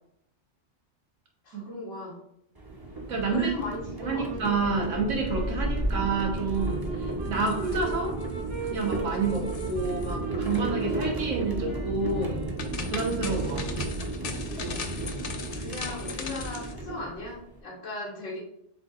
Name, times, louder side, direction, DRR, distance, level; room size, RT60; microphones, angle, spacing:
voice 1, 1.4-2.2 3.3-4.3 5.5-5.7 15.4-18.4, left 2 dB, 90° left, -6 dB, 1.4 m, -37 dB
sound 1, 2.6-17.6, right 2 dB, 25° right, 0.6 m, -33 dB
voice 2, 3.1-3.5 4.0-8.2 8.7-12.4 12.9-13.9, right 4 dB, 90° right, 0 dB, 1.5 m, -29 dB
sound 2, 3.9-13.9, right 4 dB, 55° right, 1.5 m, -40 dB
sound 3, 7.3-8.2 8.5-9.0 9.2-10.1 10.4-10.6 12.2-16.7, left 4 dB, 55° left, 0.4 m, -39 dB
7.4 x 2.7 x 2.4 m, 0.73 s
omnidirectional pair, 1.2 m